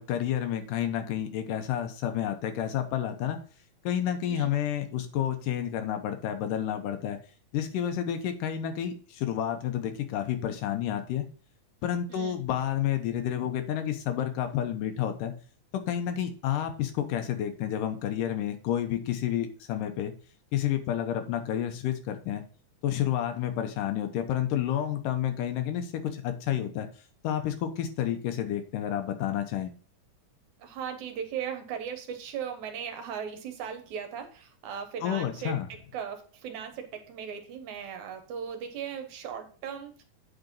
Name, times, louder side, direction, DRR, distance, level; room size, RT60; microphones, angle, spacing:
voice 1, 0.0-3.4 3.8-7.2 7.5-11.2 11.8-15.3 15.9-20.1 20.5-22.4 22.8-26.9 27.2-29.7 35.0-35.7, left 10 dB, 85° left, 7 dB, 2.6 m, -30 dB
voice 2, 30.6-35.6 35.9-40.0, right 8 dB, 70° right, 6 dB, 2.3 m, -37 dB
8.7 x 4.0 x 5.3 m, 0.41 s
omnidirectional pair, 3.7 m